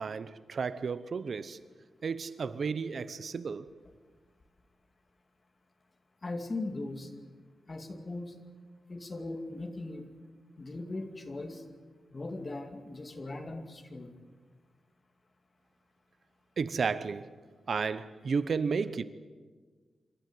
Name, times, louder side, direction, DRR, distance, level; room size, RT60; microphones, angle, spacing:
voice 1, 0.0-1.6 2.0-3.7 16.6-17.3 17.7-19.0, right 5 dB, 60° right, 0.8 m, -32 dB
voice 2, 6.2-7.1 7.7-8.4 8.9-10.1 10.6-11.6 12.1-14.2, left 2 dB, 30° left, 2.4 m, -39 dB
26.5 x 13.5 x 9.4 m
wide cardioid pair, 125°, 0 cm